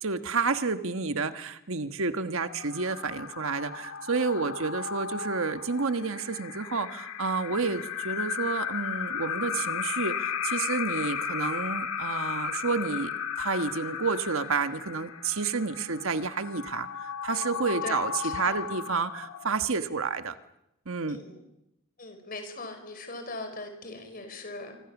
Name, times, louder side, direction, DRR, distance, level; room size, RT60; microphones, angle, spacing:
voice 1, 0.0-20.4 20.9-21.2, right 4 dB, 65° right, 10 dB, 1.3 m, -30 dB
sound 1, 2.4-19.8, left 7 dB, 85° left, 1.9 m, -35 dB
voice 2, 7.5-7.8 17.8-18.6 21.0-21.4 22.0-24.8, left 2 dB, 40° left, 7 dB, 5.0 m, -40 dB
26.0 x 25.0 x 7.2 m, 0.84 s
head